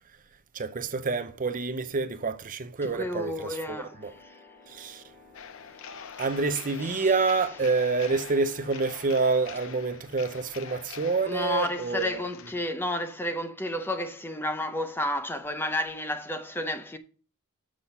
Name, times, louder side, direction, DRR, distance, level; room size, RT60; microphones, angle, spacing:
voice 1, 0.5-4.1 4.7-5.0 6.2-12.2, right 4 dB, 35° right, 0.6 m, -28 dB
voice 2, 2.8-4.4 5.9-6.2 6.8-7.1 11.3-17.0, left 1 dB, 10° left, 0.6 m, -32 dB
sound 1, 3.2-8.7, left 3 dB, 40° left, 3.5 m, -54 dB
sound 2, 5.3-12.5, left 7 dB, 60° left, 0.6 m, -44 dB
7.2 x 6.3 x 5.4 m
head